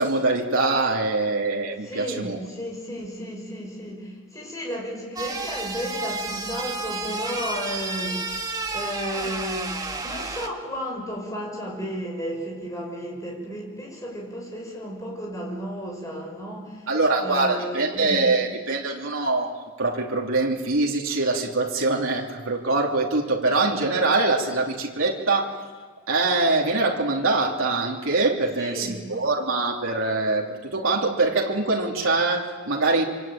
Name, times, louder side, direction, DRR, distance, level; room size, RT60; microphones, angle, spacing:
voice 1, 0.0-2.4 16.9-25.6 26.1-33.0, right 3 dB, 80° right, -1 dB, 2.9 m, -23 dB
voice 2, 1.8-9.7 10.0-16.9 17.2-18.3 21.7-21.9 28.6-29.1, equal, 15° left, -1 dB, 6.5 m, -33 dB
sound 1, 5.2-10.5, right 3 dB, 20° right, 1.6 m, -31 dB
26.5 x 25.0 x 9.0 m, 1.4 s
head